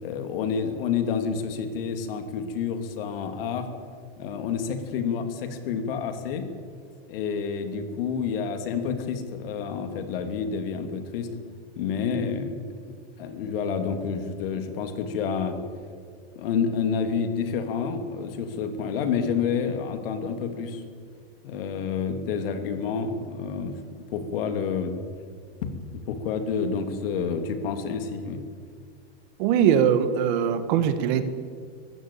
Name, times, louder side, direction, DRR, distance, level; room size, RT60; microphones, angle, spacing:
voice 1, 0.0-3.7 4.2-6.5 7.1-11.3 11.7-12.9 13.2-15.6 16.3-20.8 21.4-24.9 26.1-28.4, left 6 dB, 65° left, 7 dB, 2.8 m, -29 dB
voice 2, 29.4-31.2, right 8 dB, 50° right, 10 dB, 1.7 m, -21 dB
23.0 x 15.5 x 8.6 m, 2.1 s
supercardioid pair, 165°, 31 cm